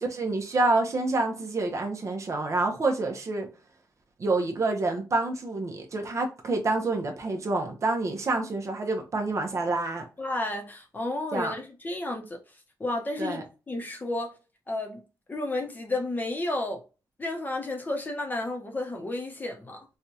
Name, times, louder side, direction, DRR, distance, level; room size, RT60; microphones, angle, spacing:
voice 1, 0.0-3.5 4.2-10.1 11.3-11.5 13.2-13.4, right 2 dB, 40° right, 0.8 m, -27 dB
voice 2, 10.2-12.4 12.8-13.4 13.7-14.3 14.7-15.0 15.3-16.8 17.2-19.8, left 2 dB, 25° left, 0.8 m, -32 dB
4.5 x 2.3 x 2.7 m
wide cardioid pair, 160°, 8 cm